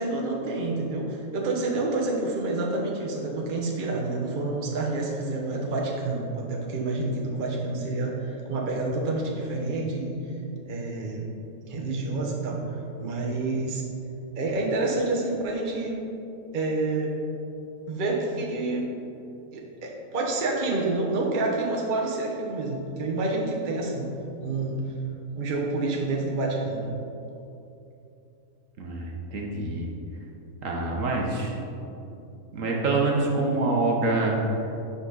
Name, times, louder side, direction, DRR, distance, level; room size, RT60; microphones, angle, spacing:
voice 1, 0.0-10.2 10.7-11.3 11.6-13.8 14.4-16.0 16.5-17.2 17.9-18.9 19.5-24.1 24.4-24.8 25.3-26.9, right 2 dB, 40° right, -2 dB, 1.0 m, -28 dB
voice 2, 28.8-29.9 30.6-31.5 32.5-34.4, right 3 dB, 65° right, -2 dB, 1.3 m, -26 dB
8.8 x 5.6 x 3.9 m, 2.8 s
omnidirectional pair, 1.5 m